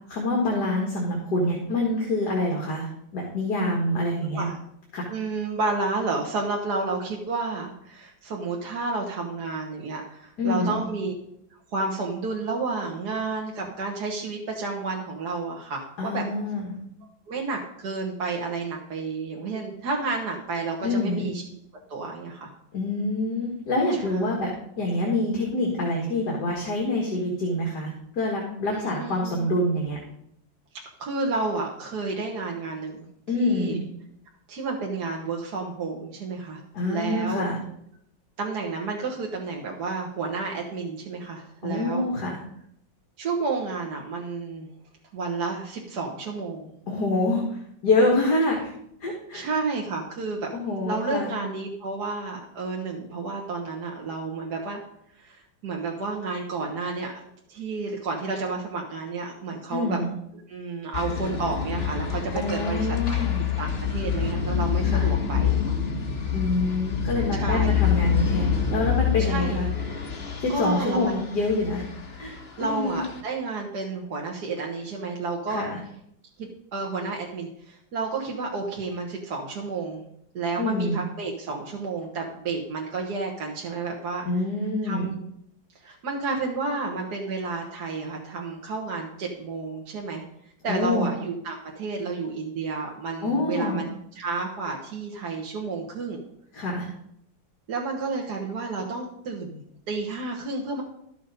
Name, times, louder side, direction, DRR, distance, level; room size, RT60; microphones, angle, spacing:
voice 1, 0.1-2.9 3.1-4.4 4.9-5.1 10.4-10.8 16.0-16.7 20.8-21.3 22.7-24.5 24.8-30.0 33.3-33.8 36.7-37.6 41.6-42.4 46.9-48.7 49.0-49.5 50.5-51.3 59.7-60.1 62.3-63.4 64.9-65.1 66.3-69.7 70.4-71.8 72.2-72.3 72.6-73.0 75.5-75.8 80.6-81.0 84.3-85.1 90.6-91.1 93.2-93.8 96.5-96.9, left 2 dB, 60° left, -2 dB, 2.5 m, -26 dB
voice 2, 5.1-11.1 11.7-16.2 17.3-21.4 21.9-22.5 24.0-24.3 28.7-29.5 31.0-33.0 33.4-33.8 34.5-37.4 38.4-42.0 43.2-44.7 45.1-46.7 49.3-50.5 50.8-54.8 55.2-57.2 57.5-60.0 60.5-63.3 63.6-65.8 67.3-67.7 69.2-69.6 70.3-71.2 72.6-75.7 76.4-80.0 80.3-84.3 84.8-85.2 85.8-90.2 90.6-93.9 94.2-96.2 97.7-99.6 99.9-100.8, right 3 dB, 60° right, 0 dB, 1.9 m, -31 dB
sound 1, 60.9-73.2, left 8 dB, 35° left, 1.5 m, -27 dB
13.0 x 6.9 x 5.2 m, 0.73 s
omnidirectional pair, 2.0 m